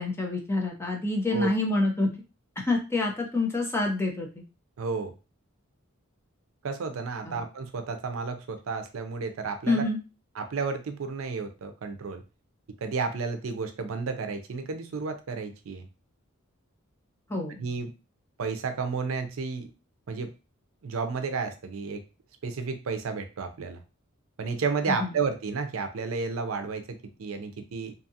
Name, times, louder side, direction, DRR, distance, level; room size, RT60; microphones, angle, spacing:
voice 1, 0.0-2.1 2.6-4.4 7.3-7.4 9.7-10.0 17.3-17.7 24.9-25.1, left 2 dB, 10° left, 0 dB, 0.6 m, -27 dB
voice 2, 4.8-5.1 6.6-9.8 10.4-12.2 12.8-15.9 17.6-17.9 18.4-19.7 20.1-20.3 20.8-22.0 22.4-23.8 24.4-27.9, right 4 dB, 75° right, 8 dB, 0.5 m, -32 dB
2.7 x 2.3 x 2.7 m, 0.30 s
head